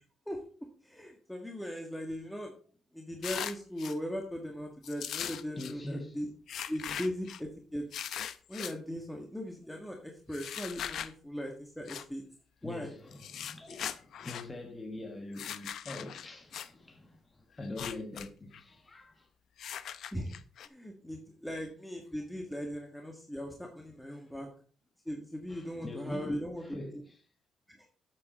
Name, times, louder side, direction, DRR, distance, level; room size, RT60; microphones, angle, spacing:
voice 1, 0.3-2.5 2.9-6.3 6.7-7.9 8.5-12.2 12.6-12.9 20.1-20.3 20.6-24.5 25.0-26.6 27.7-27.9, equal, 5° left, 1.6 m, -39 dB
sound 1, 3.2-4.0 4.8-5.7 6.5-7.4 7.9-8.7 10.3-11.1 11.9-12.0 13.1-14.5 15.3-16.7 17.6-18.3 18.5-18.6 19.6-20.7, left 9 dB, 70° left, 0.6 m, -40 dB
voice 2, 5.6-6.2 12.6-19.3 24.1-24.3 25.5-27.2, left 2 dB, 25° left, 1.2 m, -43 dB
8.4 x 7.7 x 4.2 m
cardioid pair, 90°, 0 cm